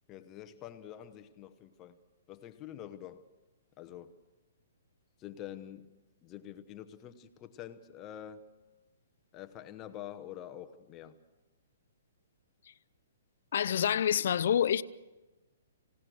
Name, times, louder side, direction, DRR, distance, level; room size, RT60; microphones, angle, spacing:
voice 1, 0.1-2.0 2.3-3.2 3.8-4.1 5.2-5.9 6.2-8.4 9.3-11.1, left 11 dB, 20° left, 1.0 m, -46 dB
voice 2, 13.5-14.8, left 9 dB, 60° left, 0.7 m, -27 dB
27.0 x 17.5 x 6.3 m
hypercardioid pair, 160°, 0 cm